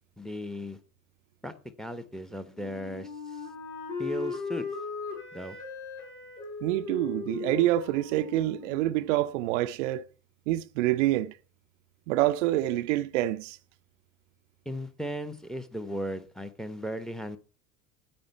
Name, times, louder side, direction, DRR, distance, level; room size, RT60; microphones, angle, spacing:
voice 1, 0.2-0.8 1.4-1.5 1.8-3.1 4.0-4.6 5.3-5.6 14.6-17.4, equal, ahead, 1.1 m, -36 dB
Wind instrument woodwind instrument, 2.6-9.4, left 5 dB, 45° left, 6.9 m, -38 dB
voice 2, 6.6-10.0 10.5-11.3 12.1-13.6, right 15 dB, 55° right, 0.6 m, -27 dB
13.5 x 9.1 x 4.4 m
figure-of-eight pair, 70°, 44 cm